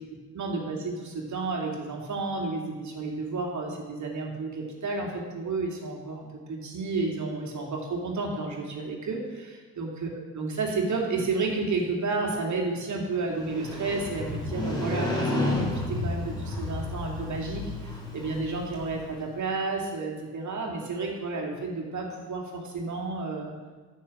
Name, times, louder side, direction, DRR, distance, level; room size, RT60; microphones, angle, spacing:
voice 1, 0.3-23.5, right 3 dB, 40° right, 0 dB, 2.6 m, -31 dB
Motorcycle, 13.3-19.2, left 1 dB, 10° left, 3.3 m, -31 dB
10.0 x 7.5 x 6.3 m, 1.4 s
figure-of-eight pair, 50°, 46 cm